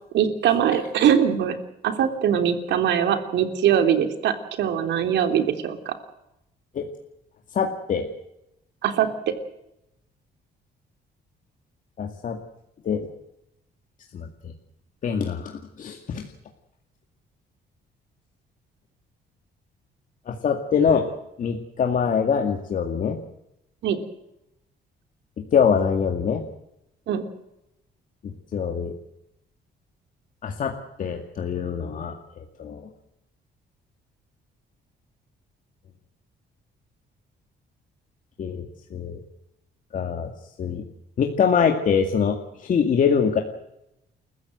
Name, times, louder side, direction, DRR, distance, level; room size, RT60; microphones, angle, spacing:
voice 1, 0.1-1.6 1.8-5.9 8.8-9.1 23.8-24.0 27.1-27.2, right 9 dB, 80° right, 7 dB, 3.3 m, -22 dB
voice 2, 7.5-8.1 12.0-12.4 12.8-13.1 14.1-14.5 15.0-16.3 20.3-21.1 21.4-23.2 25.4-26.4 28.2-28.9 30.4-30.7 31.0-32.9 38.4-39.2 39.9-40.3 40.6-40.8 41.2-43.4, left 6 dB, 45° left, 3 dB, 2.2 m, -24 dB
29.0 x 15.0 x 7.9 m, 0.85 s
cardioid pair, 150°, 18 cm